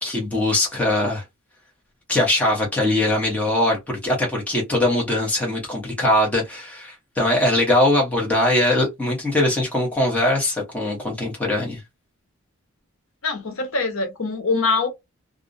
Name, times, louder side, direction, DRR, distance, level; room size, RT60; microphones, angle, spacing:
voice 1, 0.0-1.2 2.1-11.8, left 1 dB, 5° left, 0.8 m, -21 dB
voice 2, 13.2-14.9, left 3 dB, 75° left, 0.8 m, -23 dB
2.4 x 2.1 x 2.5 m
head